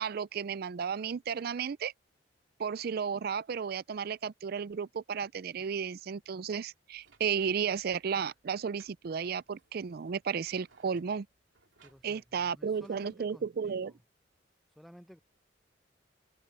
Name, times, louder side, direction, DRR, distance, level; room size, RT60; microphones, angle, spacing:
voice 1, 0.0-1.9 2.6-11.3 12.0-13.9, right 6 dB, 55° right, 0.4 m, -33 dB
sound 1, 6.9-13.1, right 4 dB, 90° right, 2.8 m, -67 dB
voice 2, 11.8-14.0 14.8-15.2, equal, ahead, 0.8 m, -54 dB
open air
head